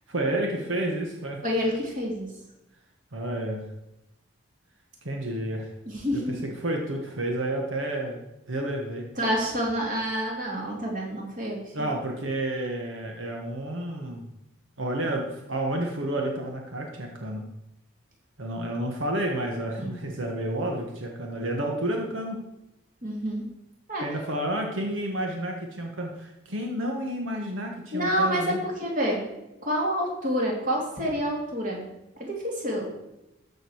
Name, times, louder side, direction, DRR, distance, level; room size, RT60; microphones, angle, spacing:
voice 1, 0.1-1.4 3.1-3.7 5.0-5.7 6.1-8.2 8.5-9.1 11.7-14.2 14.8-17.4 18.4-22.4 24.0-28.6, right 1 dB, 80° right, 1 dB, 1.5 m, -30 dB
voice 2, 1.4-2.3 5.9-6.5 9.2-11.9 19.8-20.0 23.0-23.5 23.9-24.0 27.9-29.2 29.6-31.8 32.2-32.9, equal, 40° right, -1 dB, 2.9 m, -28 dB
13.5 x 5.2 x 6.4 m, 0.90 s
head